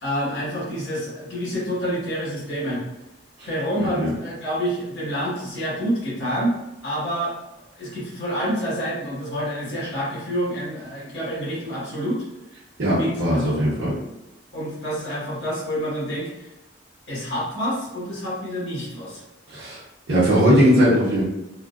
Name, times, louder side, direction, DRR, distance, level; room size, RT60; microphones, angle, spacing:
voice 1, 0.0-2.8 3.5-6.5 6.8-12.2 12.9-13.6 14.5-16.5 17.1-19.2, equal, 75° left, -6 dB, 1.4 m, -28 dB
voice 2, 12.8-13.9 19.5-19.8 20.1-21.2, equal, 60° right, -10 dB, 0.9 m, -19 dB
3.6 x 2.1 x 2.5 m, 0.96 s
head